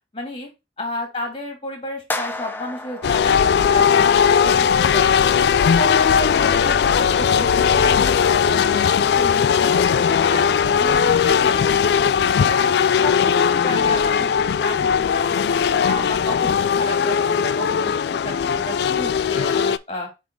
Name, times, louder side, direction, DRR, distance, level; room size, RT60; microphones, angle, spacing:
voice 1, 0.1-0.5 0.8-5.2 5.6-8.9 9.2-12.1 12.5-15.5 15.9-17.9 18.2-20.1, left 1 dB, 30° left, 4 dB, 2.2 m, -32 dB
sound 1, 2.1-4.3, left 2 dB, 10° left, 0.6 m, -32 dB
sound 2, 3.0-19.8, left 7 dB, 65° left, 0.3 m, -18 dB
7.4 x 3.6 x 3.7 m, 0.24 s
head